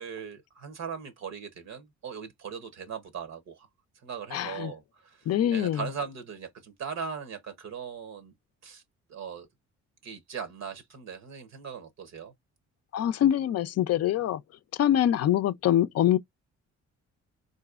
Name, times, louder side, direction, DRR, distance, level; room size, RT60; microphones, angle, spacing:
voice 1, 0.0-3.7 4.0-8.3 8.6-8.8 9.1-9.5 10.0-12.3, right 6 dB, 60° right, 0.8 m, -39 dB
voice 2, 4.3-4.7 5.3-5.8 12.9-14.4 14.8-16.2, left 11 dB, 55° left, 0.5 m, -24 dB
4.0 x 2.6 x 2.4 m
cardioid pair, 90°, 30 cm